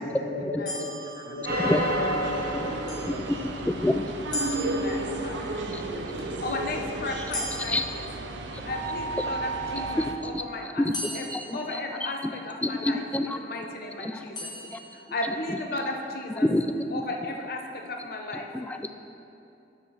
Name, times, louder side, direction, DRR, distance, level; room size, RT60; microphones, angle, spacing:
voice 1, 0.0-3.3, left 2 dB, 75° left, -7 dB, 1.2 m, -35 dB
sound 1, 0.7-2.0 2.9-3.8 4.3-5.5 7.3-8.8 10.9-12.5 14.3-15.5, left 1 dB, 25° left, 1.4 m, -38 dB
sound 2, 1.4-5.9 6.5-6.6, equal, 55° right, 1.4 m, -33 dB
sound 3, 1.5-10.1, right 2 dB, 80° right, 0.6 m, -33 dB
voice 2, 3.4-4.0 5.4-5.8 7.7-7.9 8.5-8.6 9.2-9.3 9.8-12.3 12.6-13.4 14.0-14.2 14.7-14.8 15.5-15.6 16.4-17.1 18.3-18.9, left 1 dB, 10° left, 7 dB, 0.3 m, -29 dB
voice 3, 4.6-8.1 8.6-10.8 11.1-11.3 11.5-13.0 13.4-16.5 16.9-18.5, left 2 dB, 55° left, 3 dB, 0.8 m, -35 dB
7.2 x 6.0 x 6.4 m, 2.7 s
head